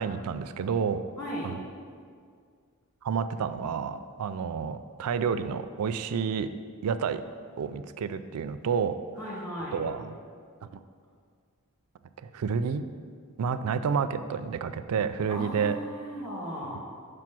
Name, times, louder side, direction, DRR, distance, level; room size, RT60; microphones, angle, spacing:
voice 1, 0.0-1.0 1.4-1.5 3.0-6.5 6.8-7.2 7.6-9.0 9.7-10.1 10.6-10.8 12.2-12.9 13.4-15.8 16.7-16.8, right 6 dB, 75° right, 12 dB, 0.4 m, -29 dB
voice 2, 1.2-1.6 9.2-9.8 15.3-16.8, equal, 15° left, -5 dB, 1.8 m, -36 dB
6.0 x 4.9 x 6.0 m, 2.1 s
head